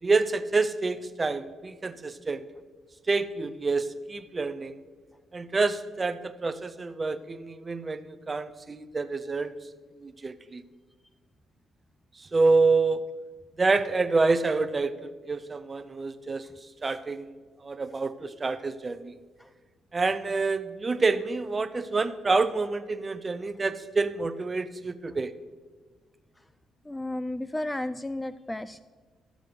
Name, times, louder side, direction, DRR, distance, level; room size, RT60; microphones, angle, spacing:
voice 1, 0.0-2.4 3.1-4.8 5.3-9.5 10.0-10.6 12.2-13.0 13.6-16.5 16.8-17.4 17.6-19.2 19.9-25.3, right 3 dB, 25° right, 12 dB, 0.6 m, -27 dB
voice 2, 26.8-28.8, left 1 dB, 10° left, 14 dB, 0.3 m, -33 dB
14.0 x 6.3 x 5.1 m, 1.4 s
cardioid pair, 90°, 0 cm